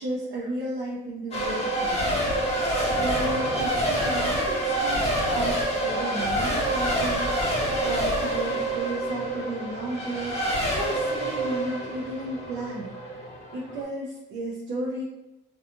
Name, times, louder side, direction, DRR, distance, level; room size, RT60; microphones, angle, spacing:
voice 1, 0.0-2.5 2.8-5.1 5.3-12.9 13.5-15.0, right 1 dB, 70° right, -5 dB, 0.6 m, -34 dB
Race car auto racing / Accelerating revving vroom / Mechanisms, 1.3-13.8, right 1 dB, 30° left, 1.1 m, -27 dB
2.7 x 2.3 x 2.6 m, 0.96 s
cardioid pair, 90°, 20 cm